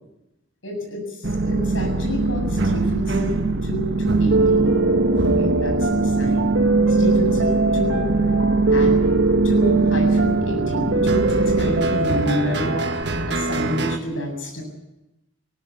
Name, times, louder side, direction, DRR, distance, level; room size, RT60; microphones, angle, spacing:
voice 1, 0.6-4.8 5.2-6.5 7.0-8.1 8.7-9.0 9.4-12.8 13.3-14.6, equal, 75° left, 3 dB, 7.6 m, -28 dB
sound 1, 1.2-14.0, right 3 dB, 60° right, 1.6 m, -22 dB
Piano, 4.3-13.0, right 2 dB, 85° right, 2.3 m, -23 dB
20.0 x 18.0 x 8.5 m, 0.96 s
head